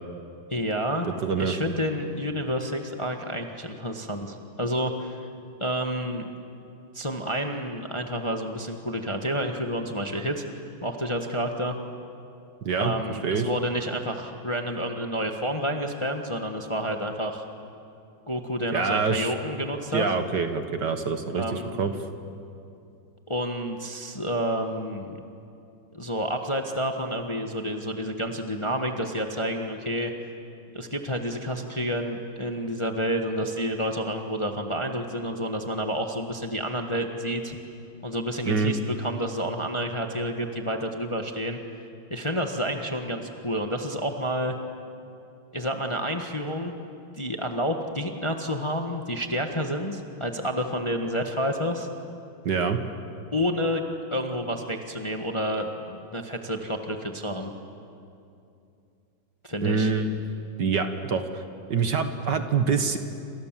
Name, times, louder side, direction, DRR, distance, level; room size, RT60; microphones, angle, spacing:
voice 1, 0.5-1.1 1.4-5.2 5.6-6.2 6.9-10.4 10.8-11.8 12.8-17.4 18.3-20.1 21.3-21.8 23.3-25.2 25.9-30.1 30.7-37.6 38.0-41.6 42.1-44.5 45.5-46.7 47.2-51.9 53.3-53.8 54.1-57.5 59.4-59.9, equal, 15° left, 4 dB, 1.3 m, -29 dB
voice 2, 1.0-1.5 12.7-12.9 13.2-13.5 18.7-19.3 19.9-21.9 38.5-38.7 52.4-52.8 59.6-60.1 60.6-61.4 61.7-63.0, right 5 dB, 55° right, 8 dB, 1.9 m, -25 dB
28.5 x 27.5 x 7.6 m, 2.6 s
omnidirectional pair, 2.3 m